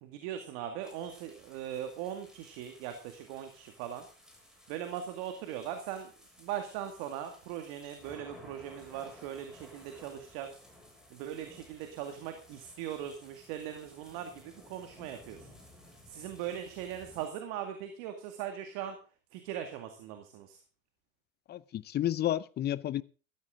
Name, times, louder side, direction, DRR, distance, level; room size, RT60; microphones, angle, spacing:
voice 1, 0.0-4.1 4.7-6.1 6.4-10.6 11.1-15.5 16.1-19.0 19.3-20.6, right 10 dB, 55° right, 2.2 m, -40 dB
sound 1, 0.8-17.3, left 1 dB, ahead, 6.3 m, -57 dB
voice 2, 21.5-23.0, left 12 dB, 25° left, 0.6 m, -31 dB
14.5 x 14.0 x 3.8 m
hypercardioid pair, 100°, 39 cm